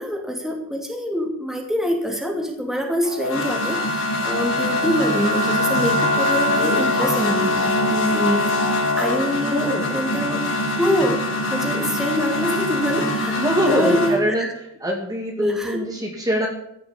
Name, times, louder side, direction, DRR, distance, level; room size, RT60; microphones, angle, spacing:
voice 1, 0.0-10.4 10.8-13.4 13.7-14.5 15.4-15.8, equal, ahead, 2 dB, 2.7 m, -25 dB
sound 1, 3.0-14.1, left 2 dB, 60° left, 5.4 m, -23 dB
Wind instrument woodwind instrument, 3.6-7.0, right 2 dB, 20° left, 2.4 m, -28 dB
voice 2, 9.4-9.9 13.3-14.5 14.8-16.5, equal, 15° right, 0 dB, 2.5 m, -23 dB
15.5 x 6.9 x 8.8 m, 0.77 s
head